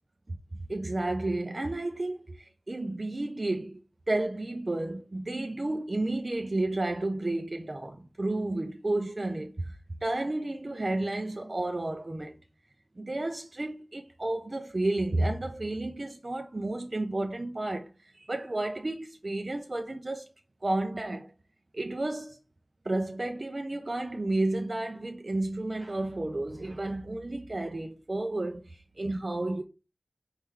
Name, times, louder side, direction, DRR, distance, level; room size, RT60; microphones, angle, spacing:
voice 1, 0.3-3.8 4.1-12.4 13.0-20.3 20.6-21.3 21.7-22.4 22.8-29.6, right 2 dB, 45° right, 0.5 m, -32 dB
4.4 x 3.2 x 3.6 m
wide cardioid pair, 75°, 0 cm